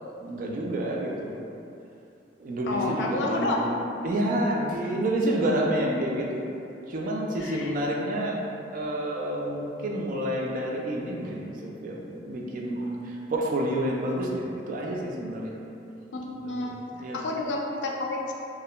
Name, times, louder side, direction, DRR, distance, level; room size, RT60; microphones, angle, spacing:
voice 1, 0.2-1.4 2.4-3.8 4.0-6.5 6.9-8.4 8.7-15.5 17.0-17.2, right 1 dB, 50° right, -1 dB, 0.3 m, -29 dB
voice 2, 2.7-3.6 7.4-7.7 16.1-16.8 17.1-18.3, left 2 dB, 75° left, -1 dB, 0.3 m, -30 dB
2.3 x 2.1 x 2.8 m, 2.6 s
head